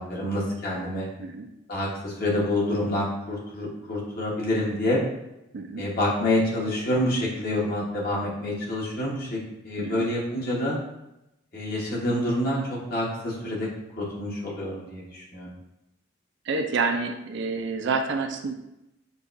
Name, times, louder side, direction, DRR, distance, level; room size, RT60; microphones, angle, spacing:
voice 1, 0.0-1.1 1.7-5.0 5.8-10.8 11.5-13.7 14.0-15.5, left 1 dB, 50° left, -5 dB, 1.1 m, -27 dB
voice 2, 5.5-5.8 9.8-10.1 16.4-18.5, right 4 dB, 60° right, 5 dB, 0.4 m, -28 dB
6.6 x 2.3 x 2.5 m, 0.91 s
head